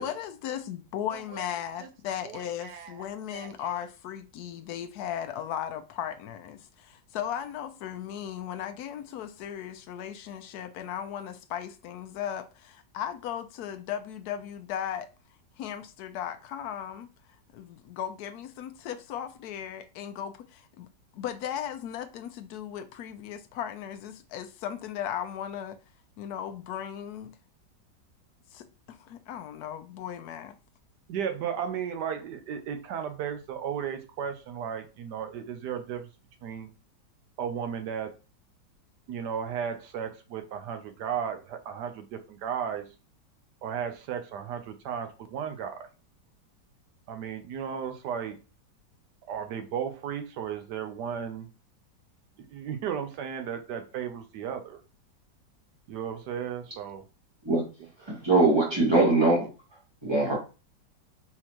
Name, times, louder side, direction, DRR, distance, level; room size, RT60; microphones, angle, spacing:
voice 1, 0.0-15.1 15.6-17.1 17.5-20.9 21.1-25.8 26.2-27.4 28.5-30.6, left 10 dB, 70° left, 1.0 m, -36 dB
voice 2, 2.2-3.0 3.3-3.8 31.1-36.0 36.4-36.7 37.4-38.1 39.1-42.9 43.6-45.9 47.1-48.4 49.3-51.5 52.5-54.8 55.9-57.0 58.6-58.8 59.4-59.5, right 8 dB, 75° right, 1.2 m, -35 dB
voice 3, 58.0-59.5 60.0-60.3, right 2 dB, 15° right, 1.6 m, -22 dB
4.2 x 3.7 x 3.0 m
omnidirectional pair, 1.9 m